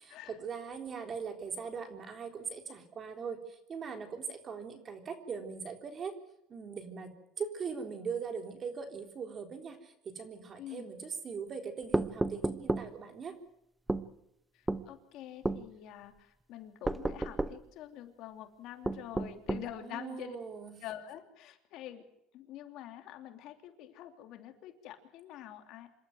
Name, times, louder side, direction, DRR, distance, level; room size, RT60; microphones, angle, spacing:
voice 1, 0.4-6.2 6.5-13.4 19.8-20.7, right 6 dB, 35° right, 6 dB, 3.7 m, -40 dB
sound 1, 11.9-12.9 13.9-14.1 14.7-14.9 15.4-15.6 16.8-17.6 18.8-19.7, right 2 dB, 10° right, 0.9 m, -31 dB
voice 2, 14.5-20.4 20.8-22.0 22.3-25.9, left 12 dB, 60° left, 6 dB, 3.0 m, -46 dB
27.0 x 12.5 x 9.3 m, 0.81 s
cardioid pair, 130°, 0 cm